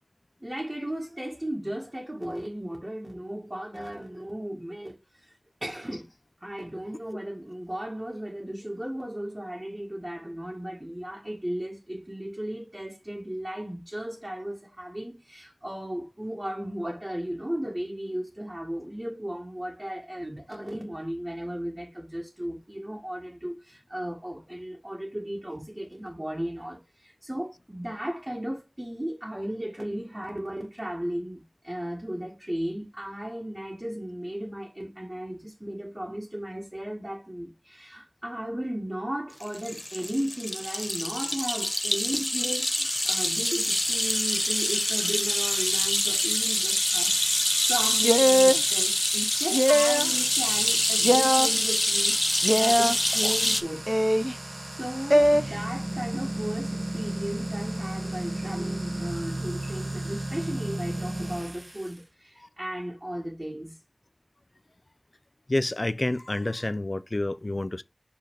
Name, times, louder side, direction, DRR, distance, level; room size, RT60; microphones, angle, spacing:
voice 1, 0.4-6.1 6.4-53.9 54.7-63.8, right 1 dB, 25° right, 2.0 m, -35 dB
sound 1, 39.4-53.6, left 1 dB, 20° left, 0.9 m, -26 dB
sound 2, 42.9-62.0, right 1 dB, 50° right, 1.7 m, -37 dB
sound 3, 48.0-48.6 49.5-50.1 51.0-51.5 52.4-53.0 53.9-54.3 55.1-55.4, equal, 5° right, 0.4 m, -21 dB
voice 2, 65.5-67.8, left 2 dB, 50° left, 0.5 m, -28 dB
5.6 x 4.4 x 4.8 m
wide cardioid pair, 45°, 0 cm